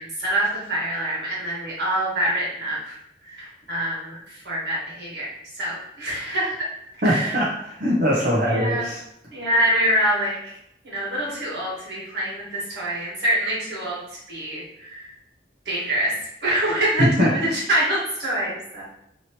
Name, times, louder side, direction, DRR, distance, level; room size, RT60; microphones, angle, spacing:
voice 1, 0.0-2.9 3.2-6.6 7.0-7.3 8.4-8.9 9.3-10.4 10.8-15.1 15.6-16.1 16.4-18.8, right 1 dB, 75° right, -6 dB, 1.4 m, -25 dB
voice 2, 7.0-9.0 17.0-17.5, equal, 50° right, -7 dB, 0.6 m, -21 dB
2.9 x 2.7 x 2.9 m, 0.76 s
head